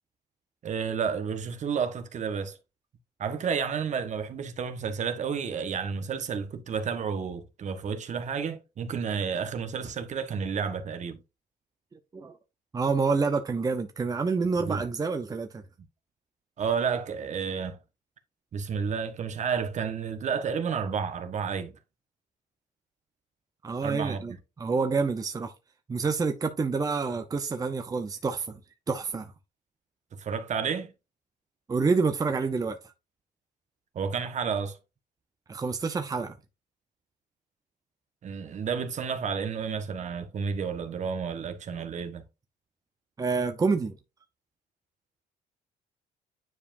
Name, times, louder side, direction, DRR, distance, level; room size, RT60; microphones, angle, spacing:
voice 1, 0.6-2.6 3.2-11.2 14.7-14.8 16.6-17.8 18.5-21.8 23.8-24.2 30.1-30.9 33.9-34.8 38.2-42.2, right 6 dB, 45° right, 1.3 m, -31 dB
voice 2, 12.7-15.6 23.6-25.5 25.9-28.6 28.9-29.3 31.7-32.9 35.5-36.4 43.2-44.0, right 4 dB, 20° right, 0.8 m, -28 dB
9.8 x 5.0 x 2.6 m
cardioid pair, 110°, 17 cm